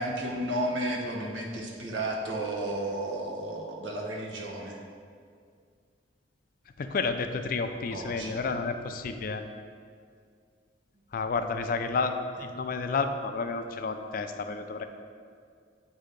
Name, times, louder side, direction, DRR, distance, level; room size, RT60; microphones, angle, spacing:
voice 1, 0.0-4.8 7.9-8.4, right 1 dB, 85° right, -1 dB, 0.9 m, -33 dB
voice 2, 6.8-9.4 11.1-14.9, left 4 dB, 50° left, 7 dB, 0.4 m, -31 dB
7.8 x 2.7 x 5.0 m, 2.2 s
head